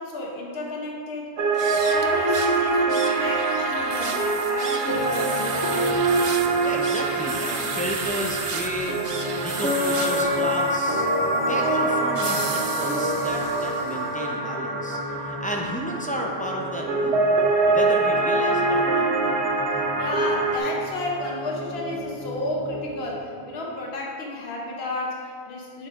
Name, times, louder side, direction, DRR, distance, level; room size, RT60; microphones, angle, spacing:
voice 1, 0.0-1.5 1.8-6.1 20.0-25.9, left 2 dB, 70° left, -2 dB, 1.2 m, -32 dB
sound 1, 1.4-20.6, right 2 dB, 80° right, 1.1 m, -24 dB
sound 2, 1.5-14.0, right 5 dB, 50° right, 0.4 m, -35 dB
sound 3, 4.8-23.7, equal, 50° left, 1.3 m, -39 dB
voice 2, 6.6-9.0 9.4-17.3 17.7-19.1, equal, 10° left, -2 dB, 0.5 m, -32 dB
7.9 x 6.7 x 2.5 m, 2.5 s
omnidirectional pair, 1.1 m